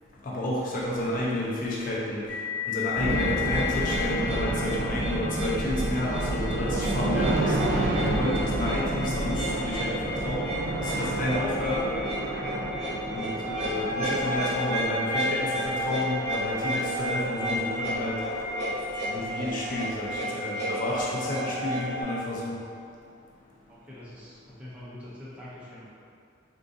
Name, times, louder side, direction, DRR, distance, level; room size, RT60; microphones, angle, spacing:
voice 1, 0.2-2.2 2.7-7.6 7.9-10.5 10.8-12.0 13.1-18.2 19.1-22.6, left 1 dB, 45° left, -5 dB, 0.4 m, -30 dB
sound 1, 2.3-11.5, left 12 dB, 80° left, 1.1 m, -38 dB
sound 2, 3.0-22.0, equal, 35° right, 1.0 m, -32 dB
sound 3, 3.0-20.2, right 1 dB, 75° right, 0.4 m, -31 dB
voice 2, 23.7-25.9, left 1 dB, 5° right, -9 dB, 0.6 m, -44 dB
3.7 x 2.5 x 2.5 m, 2.3 s
head